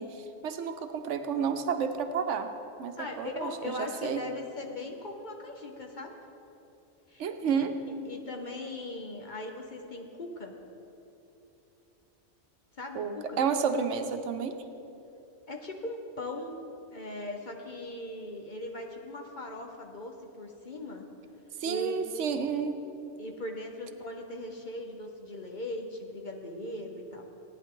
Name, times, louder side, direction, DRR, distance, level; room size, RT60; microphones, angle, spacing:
voice 1, 0.0-2.5 2.8-4.2 7.2-7.7 12.9-14.6 21.6-22.8, right 6 dB, 85° right, 8 dB, 1.1 m, -31 dB
voice 2, 3.0-6.2 7.1-7.6 8.0-10.5 12.7-13.4 15.5-16.6 16.9-21.1 21.7-22.1 23.2-27.3, left 1 dB, 45° left, 2 dB, 1.0 m, -39 dB
17.0 x 10.0 x 3.8 m, 2.9 s
omnidirectional pair, 1.2 m